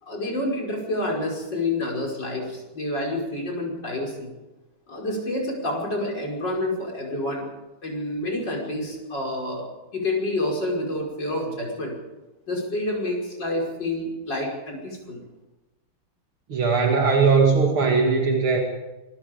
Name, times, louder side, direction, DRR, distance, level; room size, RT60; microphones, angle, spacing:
voice 1, 0.0-4.3 4.9-7.5 7.8-9.7 9.9-12.0 12.5-15.2, left 1 dB, 55° left, -1 dB, 6.2 m, -28 dB
voice 2, 16.5-18.6, right 4 dB, 75° right, 1 dB, 3.2 m, -19 dB
25.5 x 22.5 x 5.2 m, 1.1 s
omnidirectional pair, 2.3 m